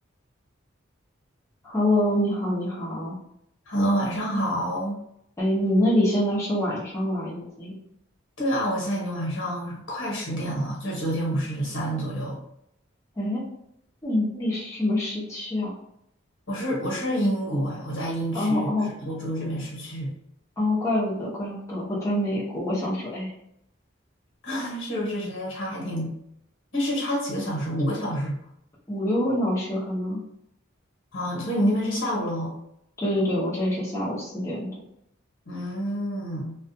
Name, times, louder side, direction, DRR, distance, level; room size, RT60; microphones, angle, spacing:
voice 1, 1.6-3.1 5.4-7.8 13.2-13.4 14.0-15.7 18.3-18.9 20.6-23.3 28.9-30.2 33.0-34.7, left 1 dB, 15° left, -8 dB, 0.7 m, -25 dB
voice 2, 3.7-5.0 8.4-12.4 16.5-20.1 24.4-26.1 26.7-28.4 31.1-32.5 35.4-36.6, equal, 75° left, -4 dB, 1.1 m, -28 dB
2.4 x 2.3 x 2.6 m, 0.76 s
head